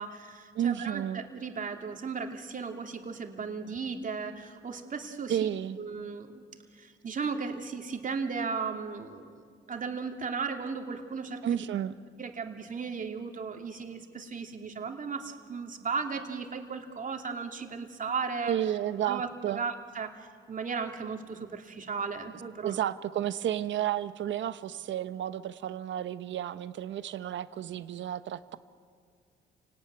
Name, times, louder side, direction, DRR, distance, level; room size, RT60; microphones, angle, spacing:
voice 1, 0.0-5.5 5.8-6.4 6.7-11.6 12.2-18.6 19.0-22.8, right 5 dB, 40° right, 4 dB, 2.7 m, -36 dB
voice 2, 0.5-1.2 5.3-5.8 11.4-11.9 18.5-19.6 22.6-28.6, right 10 dB, 70° right, 13 dB, 1.0 m, -32 dB
29.0 x 18.5 x 9.5 m, 2.1 s
cardioid pair, 90°, 20 cm